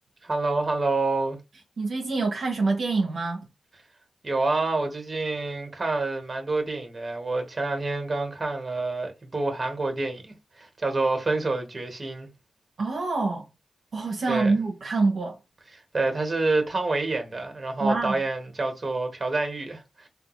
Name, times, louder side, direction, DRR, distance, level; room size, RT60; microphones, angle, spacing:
voice 1, 0.2-1.4 4.2-12.3 14.3-14.5 15.7-20.1, right 3 dB, 40° right, 1.1 m, -27 dB
voice 2, 1.8-3.5 12.8-13.5 13.9-15.4 17.8-18.2, right 3 dB, 70° right, 0.7 m, -26 dB
3.4 x 2.3 x 3.0 m
cardioid pair, 60°, 0 cm